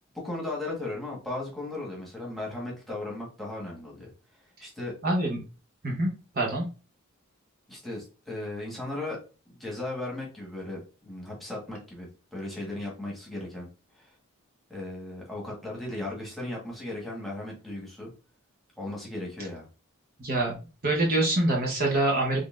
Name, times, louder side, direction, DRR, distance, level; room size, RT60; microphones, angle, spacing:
voice 1, 0.1-4.1 4.6-5.0 7.7-9.2 9.6-13.7 13.9-14.1 14.7-18.1 18.8-19.7, left 2 dB, ahead, -4 dB, 1.4 m, -36 dB
voice 2, 5.0-5.4 5.8-6.1 6.3-6.6 20.2-20.5 20.8-22.4, right 2 dB, 45° right, -1 dB, 0.9 m, -25 dB
3.9 x 3.2 x 2.5 m, 0.34 s
head